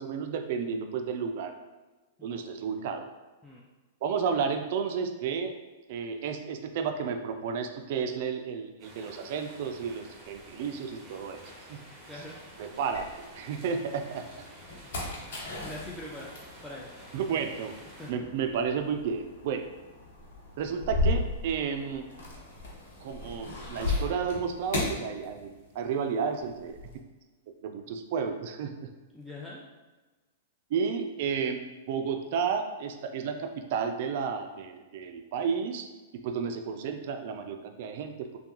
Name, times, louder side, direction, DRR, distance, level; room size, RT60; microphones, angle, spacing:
voice 1, 0.0-1.5 2.2-3.1 4.0-5.5 5.9-11.4 11.7-11.8 12.6-13.1 13.3-14.2 17.1-17.8 18.1-19.6 20.6-22.1 23.0-26.8 27.6-28.9 30.7-31.6 31.9-35.9 36.2-38.3, right 6 dB, 60° right, 6 dB, 0.3 m, -32 dB
sound 1, 8.8-18.1, right 1 dB, 20° right, 1.0 m, -50 dB
sound 2, 10.9-13.7 14.1-25.9 26.1-27.0, left 2 dB, 65° left, 1.0 m, -36 dB
voice 2, 14.8-15.2 15.6-16.9 18.0-18.1 29.1-29.7, left 1 dB, 5° left, -5 dB, 0.4 m, -43 dB
3.4 x 2.2 x 2.8 m, 1.2 s
hypercardioid pair, 115°, 0 cm